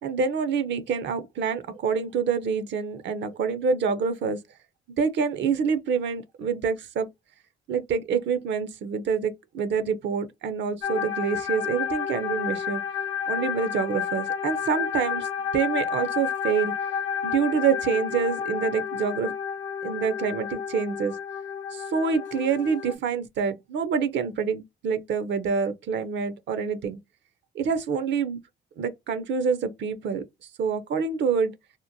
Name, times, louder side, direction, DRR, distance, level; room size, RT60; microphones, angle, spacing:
voice 1, 0.0-4.4 5.0-7.1 7.7-12.8 13.3-15.3 15.5-16.7 17.2-19.3 19.8-21.2 21.7-27.0 27.5-28.4 28.8-31.5, right 6 dB, 65° right, 0.5 m, -26 dB
sound 1, 10.8-22.9, left 8 dB, 75° left, 0.8 m, -31 dB
2.9 x 2.1 x 2.5 m
cardioid pair, 90°, 20 cm